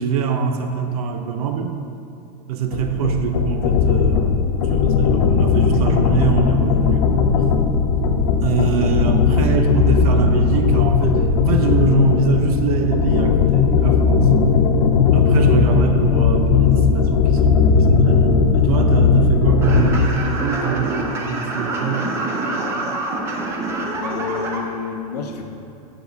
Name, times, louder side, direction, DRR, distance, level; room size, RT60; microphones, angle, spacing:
voice 1, 0.0-1.8 2.5-7.1 8.4-14.3 15.1-22.1, right 7 dB, 65° right, 6 dB, 0.6 m, -24 dB
sound 1, 2.7-20.2, left 5 dB, 50° left, 0.5 m, -17 dB
sound 2, 19.6-24.6, right 2 dB, 15° right, 0.4 m, -26 dB
voice 2, 24.0-25.4, left 6 dB, 90° left, 3 dB, 0.7 m, -29 dB
7.7 x 4.9 x 4.0 m, 2.7 s
supercardioid pair, 170°, 20 cm